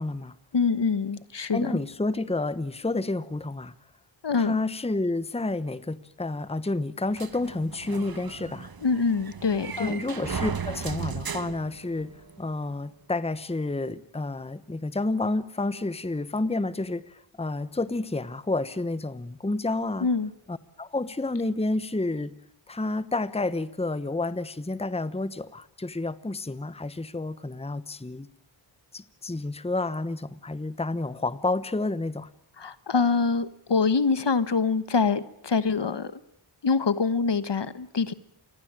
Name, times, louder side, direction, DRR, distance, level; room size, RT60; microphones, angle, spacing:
voice 1, 0.0-0.3 1.5-3.7 4.4-8.7 9.8-12.1 12.4-20.1 20.5-22.3 22.7-28.3 28.9-32.3, left 2 dB, 10° left, 15 dB, 1.0 m, -30 dB
voice 2, 0.5-1.8 4.2-4.6 8.8-9.9 20.0-20.3 32.6-36.1 36.6-38.1, left 5 dB, 60° left, 14 dB, 1.3 m, -25 dB
sound 1, 7.2-12.4, right 6 dB, 45° right, 1.3 m, -36 dB
28.0 x 20.5 x 8.9 m, 0.78 s
wide cardioid pair, 60°, 49 cm